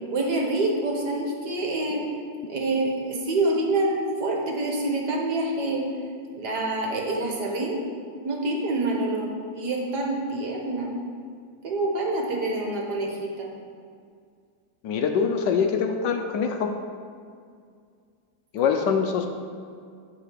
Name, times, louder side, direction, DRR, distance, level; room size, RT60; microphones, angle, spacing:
voice 1, 0.0-2.0 2.5-5.8 6.3-7.8 8.2-9.3 9.5-10.9 11.6-13.5, right 2 dB, 60° right, -1 dB, 1.7 m, -26 dB
voice 2, 14.8-16.7 18.5-19.3, left 6 dB, 75° left, 4 dB, 1.2 m, -24 dB
11.0 x 3.8 x 6.7 m, 2.2 s
omnidirectional pair, 2.1 m